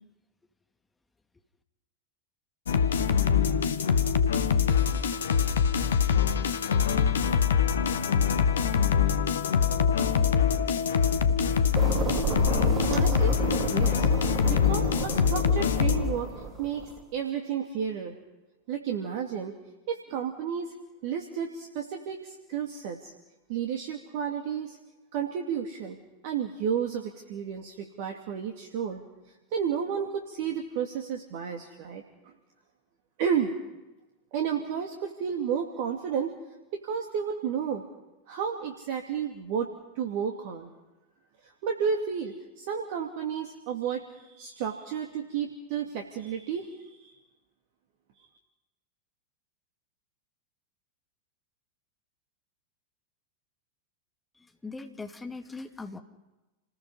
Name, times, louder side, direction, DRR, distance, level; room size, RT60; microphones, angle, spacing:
sound 1, 2.7-16.3, left 7 dB, 65° left, 1.4 m, -24 dB
sound 2, 11.7-17.0, right 6 dB, 30° right, 2.5 m, -33 dB
voice 1, 12.9-16.3 16.6-18.1 18.7-19.5 19.9-20.7 21.0-23.1 23.5-24.8 25.1-26.0 26.2-29.0 29.5-32.0 33.2-33.5 34.3-36.3 36.7-37.8 38.3-40.7 41.6-47.1 48.2-48.3, right 7 dB, 50° right, 3 dB, 2.6 m, -32 dB
voice 2, 54.6-56.0, left 3 dB, 10° left, 4 dB, 2.5 m, -39 dB
29.5 x 20.5 x 5.6 m, 1.0 s
figure-of-eight pair, 90°, 0 cm